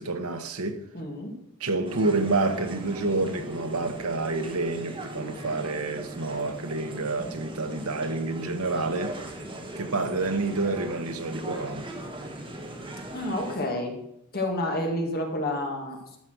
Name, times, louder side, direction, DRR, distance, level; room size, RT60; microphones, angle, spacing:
voice 1, 0.0-0.8 1.6-9.2 9.8-11.9, right 3 dB, 75° right, 1.2 m, -28 dB
voice 2, 0.9-1.4 13.1-14.0 14.3-16.2, left 1 dB, 45° left, 1.9 m, -29 dB
sound 1, 1.8-13.6, right 1 dB, 20° right, 1.8 m, -39 dB
13.0 x 6.0 x 6.3 m
head